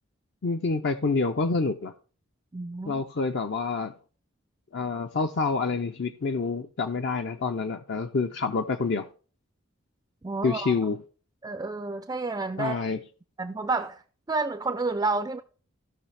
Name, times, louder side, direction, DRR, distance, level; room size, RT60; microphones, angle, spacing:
voice 1, 0.4-1.9 2.8-3.9 4.7-9.1 10.4-11.0 12.6-13.0, left 4 dB, 55° left, 0.5 m, -27 dB
voice 2, 2.5-3.0 10.2-10.7 11.4-12.7 13.4-14.0 14.3-15.4, right 3 dB, 20° right, 0.4 m, -30 dB
15.0 x 5.7 x 3.3 m
head